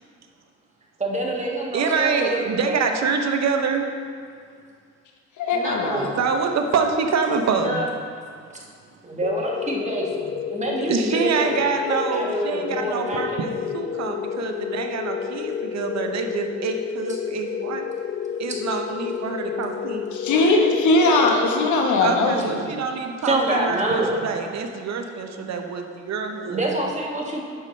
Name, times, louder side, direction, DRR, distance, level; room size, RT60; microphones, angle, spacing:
voice 1, 1.0-2.8 5.5-6.2 7.5-7.9 8.5-8.6 9.0-11.5 11.9-13.7 17.1-17.2 23.2-24.2 26.5-27.4, right 2 dB, 25° right, -2 dB, 1.5 m, -27 dB
voice 2, 1.7-3.9 6.2-7.8 10.8-17.8 18.4-20.0 22.0-26.6, right 5 dB, 60° right, 4 dB, 0.8 m, -26 dB
voice 3, 5.4-6.1 20.1-22.7, left 2 dB, 75° left, 1 dB, 1.2 m, -20 dB
sound 1, 9.2-22.4, left 8 dB, 40° left, 0.4 m, -30 dB
9.7 x 6.4 x 3.2 m, 2.2 s
cardioid pair, 90°, 30 cm